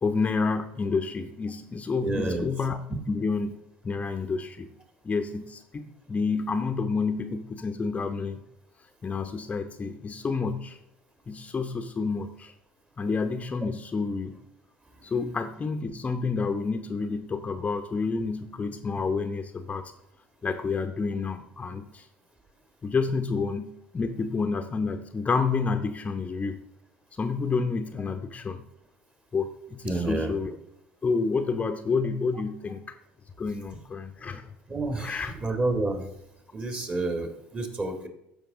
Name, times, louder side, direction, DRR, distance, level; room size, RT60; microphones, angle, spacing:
voice 1, 0.0-2.8 3.1-3.6 3.8-4.7 5.0-8.4 9.0-10.8 11.3-12.5 13.0-14.4 15.0-19.9 20.4-22.1 22.8-26.6 27.1-28.6 29.3-30.6 31.0-32.9 33.4-34.5 34.9-35.4, left 4 dB, 25° left, 7 dB, 0.8 m, -29 dB
voice 2, 2.0-2.5 29.8-30.3 34.7-36.0 36.5-38.1, right 2 dB, 25° right, 7 dB, 1.8 m, -29 dB
13.5 x 5.2 x 3.8 m, 0.80 s
figure-of-eight pair, 70°, 6 cm